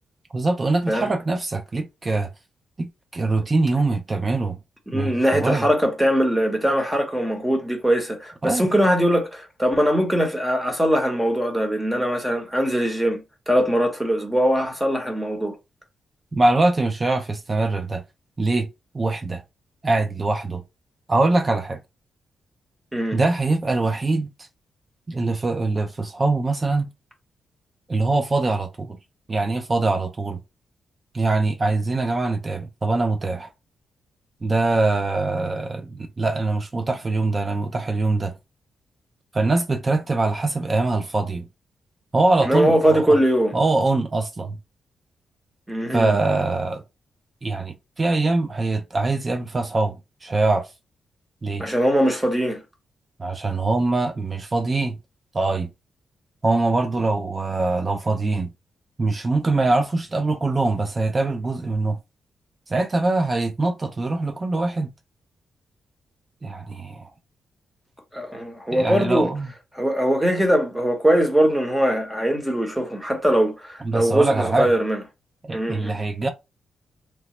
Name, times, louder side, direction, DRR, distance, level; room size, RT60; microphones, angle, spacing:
voice 1, 0.3-2.3 2.8-4.6 4.9-5.7 8.4-8.7 16.3-18.0 18.4-18.7 18.9-19.4 19.8-20.6 21.1-21.8 23.1-24.5 25.1-26.9 27.9-29.0 29.3-30.4 31.1-33.5 34.4-38.3 39.3-41.5 42.1-43.2 43.5-44.6 45.9-46.8 47.4-50.7 51.4-51.6 53.2-55.0 55.3-55.7 56.4-58.5 59.0-62.0 62.7-64.9 66.4-67.1 68.7-69.5 73.8-74.7 75.4-76.3, right 2 dB, 30° right, 0.4 m, -23 dB
voice 2, 4.9-15.6 22.9-23.2 42.4-43.6 45.7-46.2 51.6-52.6 68.1-69.3 69.7-75.0 75.5-76.0, equal, 5° right, 1.0 m, -21 dB
3.0 x 2.0 x 3.0 m
cardioid pair, 105°, 0 cm